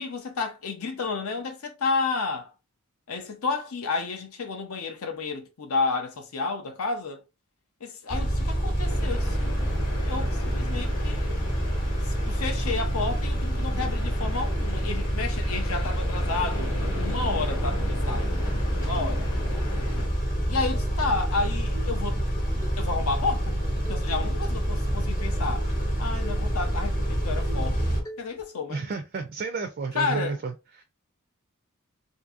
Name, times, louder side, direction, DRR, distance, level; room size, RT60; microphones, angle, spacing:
voice 1, 0.0-2.5 3.1-7.2 7.8-9.7 10.0-11.3 12.0-16.7 17.0-18.4 18.8-19.3 20.5-22.2 22.8-23.6 23.9-25.7 26.0-28.9 29.9-30.4, left 4 dB, 65° left, 0.6 m, -31 dB
Car / Idling / Accelerating revving vroom, 8.1-28.0, equal, 40° left, 0.9 m, -27 dB
sound 1, 8.8-20.1, left 3 dB, 90° left, 1.2 m, -39 dB
sound 2, 16.5-16.6 17.2-17.4 17.8-17.9 18.2-18.6 18.9-19.7 20.7-21.4 21.7-22.0 22.6-22.8 23.9-24.4 24.8-25.4 25.8-25.9 26.2-26.5 26.9-27.0 27.5-27.8 28.1-28.5, right 2 dB, 15° left, 0.5 m, -44 dB
voice 2, 28.7-30.8, right 4 dB, 40° right, 0.3 m, -32 dB
2.6 x 2.6 x 2.4 m
head